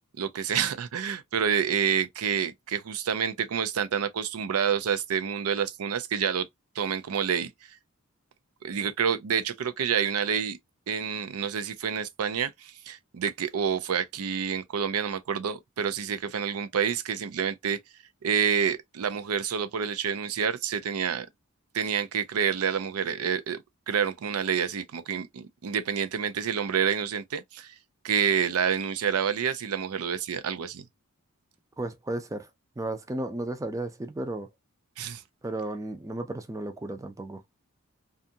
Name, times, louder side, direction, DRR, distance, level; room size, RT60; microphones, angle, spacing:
voice 1, 0.2-6.5 6.8-7.5 8.6-10.6 10.9-17.8 18.2-21.3 21.7-23.6 23.9-27.7 28.0-30.9 35.0-35.2, right 7 dB, 80° right, 0.5 m, -28 dB
voice 2, 31.8-32.5 32.8-34.5 35.4-37.4, right 2 dB, 15° right, 0.4 m, -34 dB
2.6 x 2.4 x 2.6 m
head